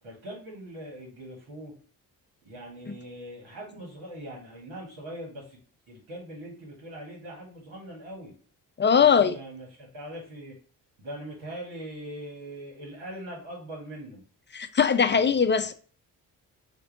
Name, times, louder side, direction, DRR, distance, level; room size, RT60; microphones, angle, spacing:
voice 1, 0.0-1.7 2.4-5.6 5.9-8.3 9.0-10.6 11.0-14.2 15.1-15.7, right 1 dB, 80° right, 1.8 m, -41 dB
voice 2, 8.8-9.4 14.5-15.7, left 6 dB, 25° left, 0.5 m, -21 dB
4.4 x 2.5 x 4.7 m
hypercardioid pair, 40°, 45 cm